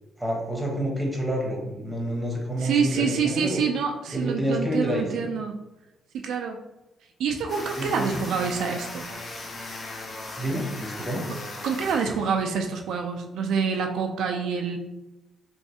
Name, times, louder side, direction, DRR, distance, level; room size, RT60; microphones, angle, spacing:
voice 1, 0.2-3.6 4.1-5.2 7.8-8.1 10.4-11.2, equal, 5° right, -1 dB, 1.0 m, -28 dB
voice 2, 2.6-5.6 6.1-6.6 7.2-9.1 11.6-14.8, right 6 dB, 75° right, 3 dB, 0.3 m, -27 dB
sound 1, 7.5-12.7, left 2 dB, 40° left, 0.6 m, -38 dB
3.1 x 2.6 x 2.7 m, 1.0 s
cardioid pair, 90°, 0 cm